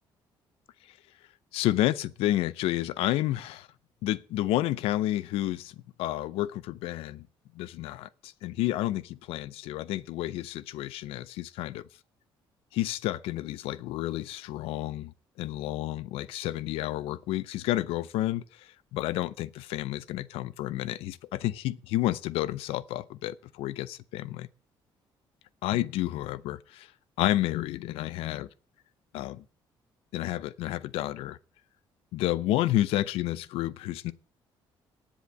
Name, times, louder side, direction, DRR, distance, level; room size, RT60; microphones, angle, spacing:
voice 1, 1.5-3.7 4.0-7.3 7.5-11.8 12.7-15.1 15.4-24.5 25.6-26.9 27.2-28.5 29.1-29.4 30.1-31.4 32.1-34.1, left 15 dB, 90° left, 0.6 m, -30 dB
10.5 x 7.2 x 8.3 m
cardioid pair, 115°, 9 cm